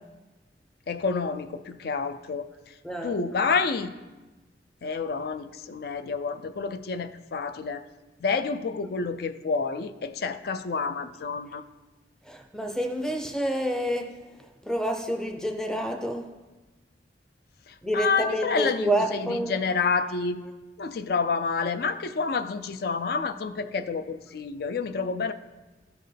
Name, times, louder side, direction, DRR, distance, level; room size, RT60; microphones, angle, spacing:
voice 1, 0.9-2.5 3.0-3.9 4.8-7.8 8.2-11.6 17.7-20.4 20.8-25.3, left 5 dB, 60° left, 11 dB, 0.4 m, -29 dB
voice 2, 2.8-3.2 12.3-14.2 14.7-16.4 17.8-19.6, right 1 dB, 5° left, 5 dB, 0.5 m, -28 dB
13.0 x 4.4 x 3.3 m, 1.2 s
head